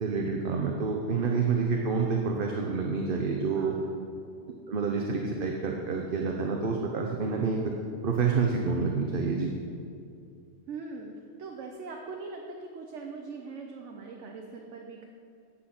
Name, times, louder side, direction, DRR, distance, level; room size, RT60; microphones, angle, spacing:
voice 1, 0.0-3.7 4.7-7.6 8.0-9.5, right 5 dB, 50° right, 1 dB, 0.9 m, -28 dB
voice 2, 3.5-4.0 10.7-11.1 11.4-15.1, right 4 dB, 70° right, 1 dB, 1.1 m, -41 dB
10.0 x 7.8 x 6.0 m, 2.5 s
omnidirectional pair, 1.3 m